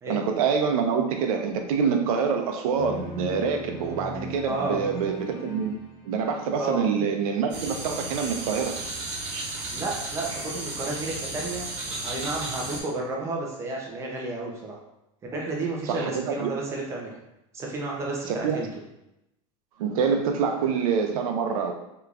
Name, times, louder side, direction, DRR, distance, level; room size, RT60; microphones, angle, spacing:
voice 1, 0.1-5.8 6.1-8.8 15.9-16.6 18.3-18.6 19.8-21.7, right 6 dB, 85° right, 4 dB, 0.6 m, -26 dB
sound 1, 2.7-6.5, left 1 dB, 90° left, 1.2 m, -39 dB
voice 2, 4.4-4.8 6.6-6.8 9.7-11.7 12.0-14.8 15.3-17.2 17.5-18.7, right 2 dB, 15° right, -2 dB, 0.6 m, -31 dB
sound 2, 7.5-12.8, right 2 dB, 65° right, 1.1 m, -34 dB
3.4 x 2.9 x 2.4 m, 0.87 s
supercardioid pair, 165°, 18 cm